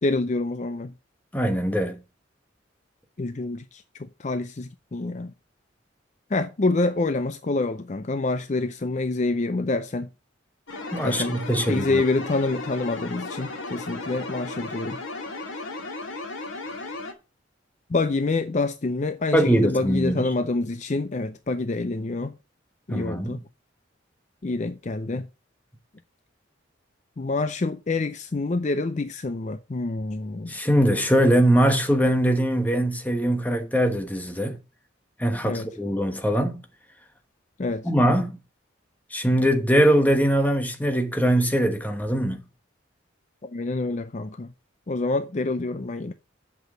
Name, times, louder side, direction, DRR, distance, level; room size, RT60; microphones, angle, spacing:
voice 1, 0.0-0.9 3.2-5.3 6.3-10.1 11.0-11.4 11.7-15.0 17.9-22.4 22.9-23.4 24.4-25.3 27.2-30.5 35.4-35.7 37.6-37.9 43.4-44.5 44.9-46.1, left 3 dB, 35° left, 0.5 m, -27 dB
voice 2, 1.3-2.0 10.9-12.0 19.3-20.3 22.9-23.4 30.5-34.6 35.2-36.6 37.8-38.4 39.1-42.4, equal, 10° left, 1.1 m, -22 dB
sound 1, 10.7-17.1, left 2 dB, 80° left, 2.0 m, -35 dB
8.0 x 6.2 x 6.1 m
head